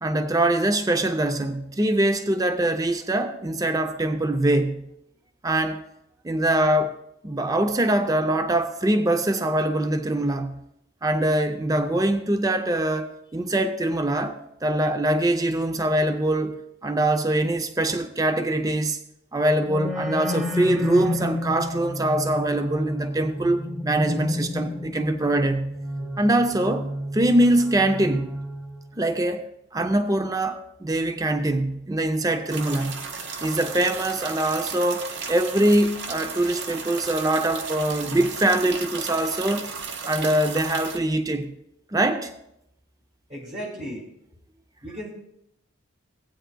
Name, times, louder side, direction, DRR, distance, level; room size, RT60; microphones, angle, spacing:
voice 1, 0.0-4.9 5.4-5.9 6.2-7.0 7.2-10.6 11.0-14.4 14.6-19.0 19.3-25.8 26.2-26.9 27.1-28.4 29.0-33.1 33.4-39.7 40.0-41.5 41.9-42.3, right 1 dB, 15° right, 0.5 m, -23 dB
sound 1, 19.6-29.0, left 1 dB, ahead, 1.0 m, -31 dB
sound 2, 32.5-41.0, right 5 dB, 55° right, 0.9 m, -35 dB
voice 2, 43.3-44.1 44.8-45.1, equal, 35° right, 1.5 m, -35 dB
17.0 x 8.9 x 2.2 m
head